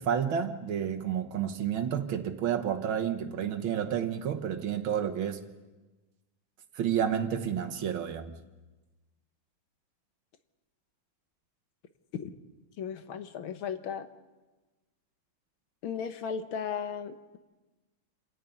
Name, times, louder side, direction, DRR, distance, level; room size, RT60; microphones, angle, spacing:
voice 1, 0.0-5.4 6.7-8.3, right 8 dB, 75° right, 1.9 m, -30 dB
voice 2, 12.8-14.1 15.8-17.4, left 7 dB, 80° left, 1.9 m, -36 dB
28.0 x 10.5 x 9.2 m
omnidirectional pair, 2.2 m